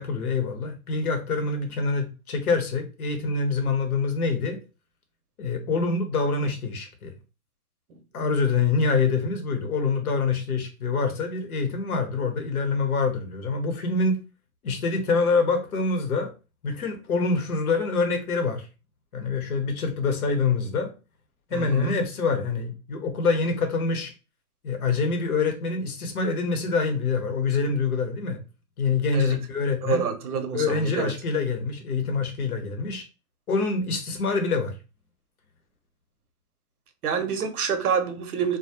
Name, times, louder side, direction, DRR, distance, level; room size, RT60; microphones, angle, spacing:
voice 1, 0.0-4.6 5.4-7.1 8.1-14.2 14.6-16.3 16.6-18.7 19.1-20.9 21.5-24.1 24.6-28.4 28.8-30.0 30.5-33.0 33.5-34.8, left 4 dB, 75° left, 0.9 m, -25 dB
voice 2, 21.5-21.9 29.1-29.4 29.8-31.1 37.0-38.6, right 6 dB, 80° right, 0.7 m, -27 dB
2.3 x 2.1 x 2.7 m
hypercardioid pair, 140°, 44 cm